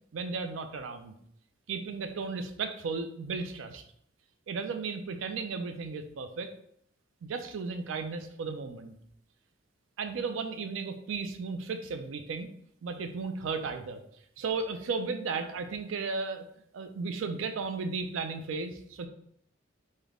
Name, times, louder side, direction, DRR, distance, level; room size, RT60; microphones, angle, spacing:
voice 1, 0.1-1.1 1.7-3.8 4.5-6.5 7.2-8.9 10.0-12.5 12.8-14.0 14.4-16.4 16.7-19.1, right 4 dB, 80° right, 8 dB, 0.4 m, -35 dB
3.3 x 2.1 x 3.6 m, 0.70 s
head